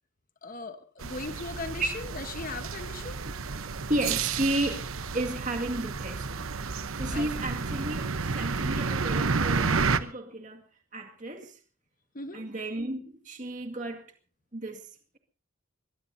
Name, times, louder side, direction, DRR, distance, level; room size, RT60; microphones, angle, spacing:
voice 1, 0.4-3.2 7.1-7.3 12.1-12.4, left 3 dB, 40° left, 1.2 m, -38 dB
sound 1, 1.0-10.0, right 4 dB, 75° right, 1.0 m, -31 dB
voice 2, 3.6-4.9 5.1-6.5 7.0-10.7 10.9-11.6 12.3-14.1 14.5-14.8, right 1 dB, 35° right, 2.1 m, -33 dB
23.0 x 21.0 x 2.7 m
head